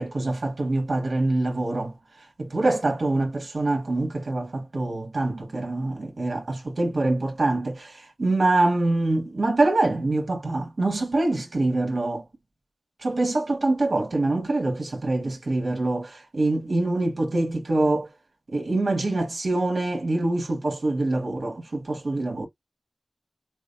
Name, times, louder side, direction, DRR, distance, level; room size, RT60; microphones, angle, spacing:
voice 1, 0.0-1.9 2.4-12.2 13.0-18.1 18.5-22.5, right 2 dB, 75° right, 1.4 m, -25 dB
6.0 x 2.0 x 2.5 m
wide cardioid pair, 75°, 0 cm